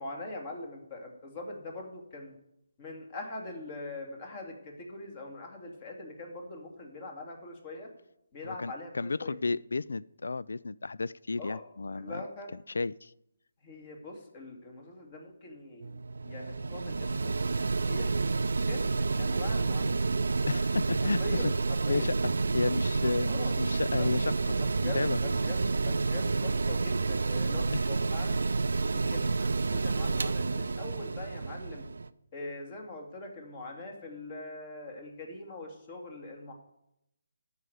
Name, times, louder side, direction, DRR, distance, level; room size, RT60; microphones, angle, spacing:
voice 1, 0.0-2.3 2.8-7.9 8.3-9.4 11.4-11.6 11.9-12.5 13.6-17.4 17.8-18.4 18.7-20.0 21.2-22.1 23.3-23.5 24.0-24.1 24.6-28.5 28.9-31.9 32.3-36.5, left 2 dB, 35° left, 2 dB, 2.3 m, -42 dB
voice 2, 8.4-12.2 12.7-13.1 20.5-21.5 21.9-25.2 27.7-27.9, left 3 dB, 70° left, 20 dB, 0.3 m, -33 dB
Mechanical fan, 15.8-32.1, right 3 dB, 70° right, 0.5 m, -29 dB
12.5 x 4.9 x 8.0 m, 0.82 s
figure-of-eight pair, 150°, 0 cm